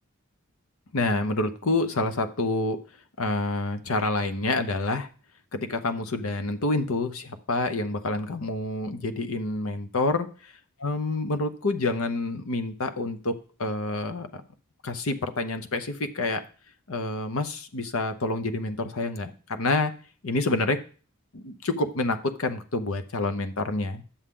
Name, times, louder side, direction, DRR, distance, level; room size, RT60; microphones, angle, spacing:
voice 1, 0.9-2.8 3.2-5.1 5.5-10.3 10.8-13.3 13.6-14.3 14.8-16.4 16.9-19.9 20.2-20.8 21.3-24.0, left 2 dB, 70° left, 10 dB, 0.8 m, -28 dB
9.8 x 7.2 x 3.7 m, 0.40 s
head